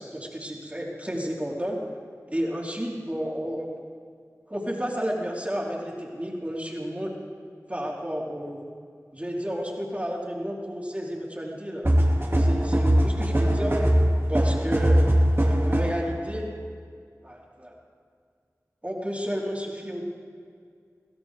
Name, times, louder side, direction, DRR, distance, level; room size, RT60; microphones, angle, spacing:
voice 1, 0.0-1.8 2.3-3.7 4.5-7.1 7.7-8.7 9.1-11.9 12.4-13.8 14.3-15.1 15.4-16.5 17.2-17.7 18.8-20.0, equal, 20° right, -3 dB, 3.8 m, -31 dB
sound 1, 11.8-16.1, equal, 40° right, 2.6 m, -21 dB
22.5 x 16.5 x 3.7 m, 2.2 s
wide cardioid pair, 40°, 6 cm